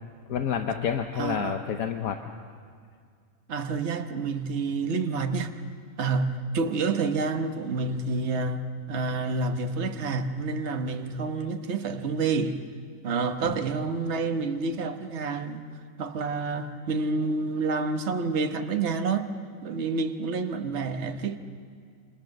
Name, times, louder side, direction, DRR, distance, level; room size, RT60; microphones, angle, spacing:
voice 1, 0.3-2.2 13.4-13.6, left 8 dB, 85° left, 6 dB, 1.4 m, -29 dB
voice 2, 1.1-1.6 3.5-5.5 6.0-8.6 8.9-12.6 13.0-15.6 16.0-19.3 19.6-21.4, right 4 dB, 55° right, 7 dB, 1.4 m, -28 dB
28.5 x 26.0 x 6.6 m, 2.1 s
omnidirectional pair, 1.5 m